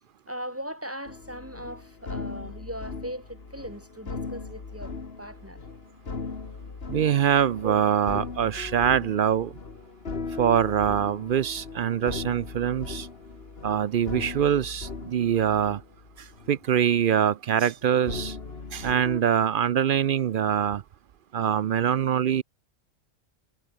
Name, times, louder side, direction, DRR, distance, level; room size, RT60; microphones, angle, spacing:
voice 1, 0.3-5.6, equal, 10° right, 3.3 m, -39 dB
sound 1, 1.1-16.6 16.9-17.2 18.1-19.2, left 4 dB, 50° left, 2.2 m, -38 dB
voice 2, 6.9-9.5 10.4-13.1 13.6-15.8 16.5-18.4 18.7-20.8 21.3-22.4, right 9 dB, 60° right, 0.6 m, -24 dB
omnidirectional pair, 1.3 m